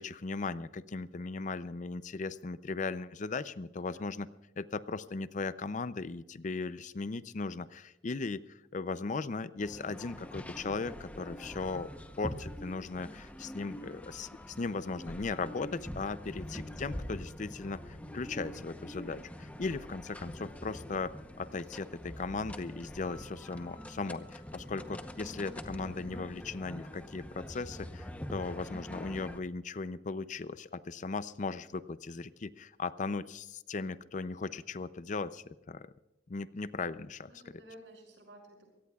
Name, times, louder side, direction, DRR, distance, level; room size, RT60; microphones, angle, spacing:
voice 1, 0.0-4.3 4.6-11.9 12.2-35.9 36.3-37.3, left 4 dB, 40° left, 15 dB, 0.5 m, -37 dB
sound 1, 9.6-29.4, equal, 10° left, 0.8 m, -44 dB
voice 2, 37.3-38.7, right 1 dB, 75° right, 2 dB, 6.5 m, -54 dB
24.5 x 17.5 x 2.4 m, 0.98 s
head